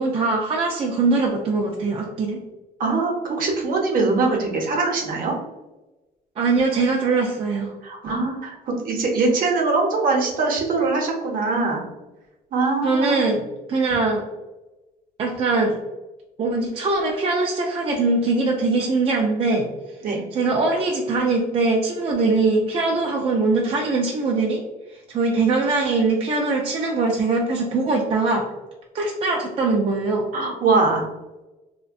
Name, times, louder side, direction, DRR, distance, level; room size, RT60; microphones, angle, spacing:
voice 1, 0.0-2.4 6.4-7.7 12.8-13.4 13.7-14.2 15.2-15.8 16.4-19.7 20.3-24.6 25.1-28.5 28.9-30.2, right 3 dB, 35° right, -1 dB, 0.4 m, -22 dB
voice 2, 2.8-5.3 7.8-11.9 12.5-13.3 20.0-20.2 30.3-31.1, right 3 dB, 55° right, 0 dB, 0.7 m, -22 dB
2.5 x 2.1 x 2.4 m, 1.1 s
cardioid pair, 110°, 17 cm